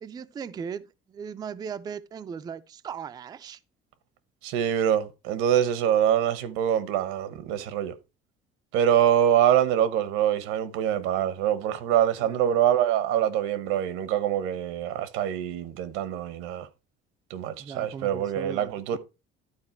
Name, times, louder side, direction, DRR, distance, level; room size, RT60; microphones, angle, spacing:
voice 1, 0.0-3.6 12.2-12.6 17.6-19.0, right 7 dB, 20° right, 0.3 m, -38 dB
voice 2, 4.4-7.9 8.7-16.7 17.3-19.0, right 10 dB, 90° right, 1.1 m, -24 dB
12.0 x 4.4 x 4.4 m
cardioid pair, 160°, 21 cm